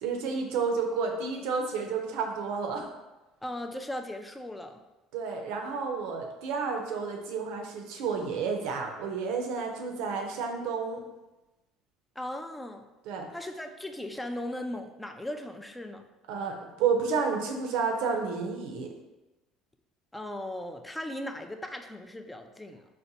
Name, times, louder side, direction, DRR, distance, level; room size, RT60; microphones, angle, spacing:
voice 1, 0.0-2.9 5.1-11.0 13.1-13.3 16.3-18.9, right 5 dB, 75° right, 3 dB, 0.5 m, -31 dB
voice 2, 3.4-4.8 12.2-12.9 13.3-16.0 20.1-22.8, left 1 dB, 10° left, 5 dB, 0.3 m, -37 dB
4.0 x 2.1 x 2.6 m, 1.1 s
supercardioid pair, 85°, 0 cm